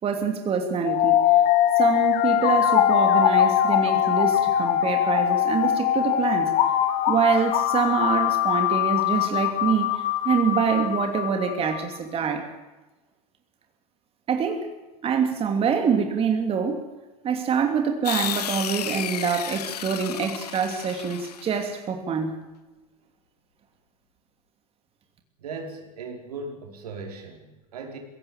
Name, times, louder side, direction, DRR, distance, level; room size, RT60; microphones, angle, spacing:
voice 1, 0.0-1.2 1.8-6.5 7.1-12.5 14.3-14.7 15.0-16.8 17.2-22.4, right 6 dB, 30° right, 5 dB, 2.9 m, -25 dB
sound 1, 0.8-11.8, left 11 dB, 45° left, 1.9 m, -22 dB
sound 2, 18.0-21.7, left 10 dB, 80° left, 1.2 m, -32 dB
voice 2, 25.4-28.0, right 3 dB, 75° right, 3 dB, 5.0 m, -38 dB
21.5 x 17.0 x 9.0 m, 1.2 s
hypercardioid pair, 100°, 20 cm